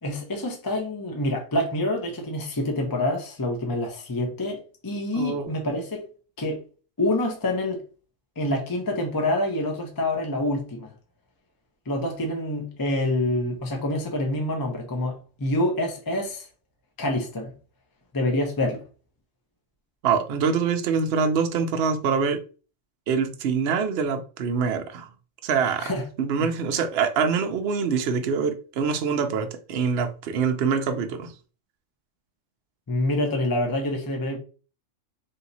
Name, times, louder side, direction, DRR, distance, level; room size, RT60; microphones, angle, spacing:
voice 1, 0.0-6.1 6.4-6.6 7.0-7.8 8.4-10.9 11.9-16.4 17.0-17.5 18.1-18.8 25.8-26.0 26.4-26.5 32.9-34.4, left 1 dB, 20° left, 0.6 m, -26 dB
voice 2, 5.1-5.5 20.0-22.4 23.1-25.1 25.4-25.9 26.2-31.3, right 6 dB, 60° right, 0.8 m, -25 dB
3.5 x 2.8 x 3.9 m
omnidirectional pair, 1.4 m